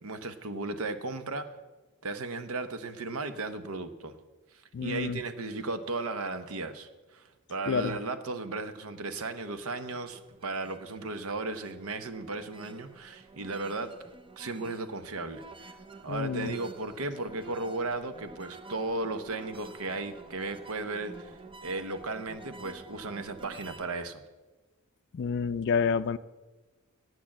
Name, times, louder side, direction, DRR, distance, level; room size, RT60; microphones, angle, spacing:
voice 1, 0.0-1.5 2.0-4.2 4.8-13.9 14.4-15.8 16.0-24.2, right 3 dB, 75° right, 10 dB, 0.9 m, -35 dB
voice 2, 4.7-5.2 7.7-8.0 16.1-16.5 25.1-26.2, left 5 dB, 55° left, 15 dB, 0.4 m, -29 dB
sound 1, 9.5-23.9, right 3 dB, 25° right, 0.5 m, -50 dB
9.0 x 8.7 x 7.2 m, 1.2 s
head